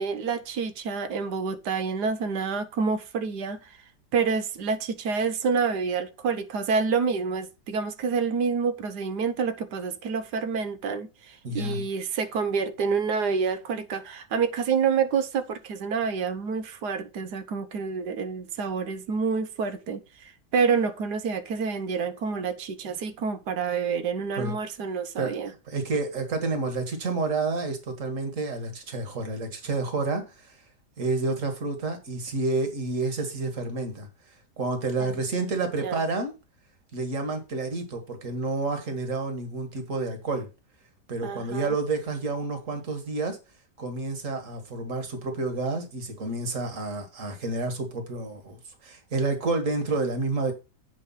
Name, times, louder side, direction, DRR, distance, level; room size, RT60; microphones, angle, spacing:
voice 1, 0.0-3.7 4.1-20.0 20.5-25.5 35.0-35.2 35.8-36.0 41.2-41.7, right 5 dB, 75° right, 1.4 m, -28 dB
voice 2, 11.4-11.8 24.4-24.6 25.2-25.3 25.7-30.6 31.0-34.1 34.6-36.3 36.9-40.5 41.1-43.4 43.8-50.5, right 3 dB, 50° right, 2.1 m, -29 dB
8.5 x 5.1 x 5.7 m
omnidirectional pair, 1.8 m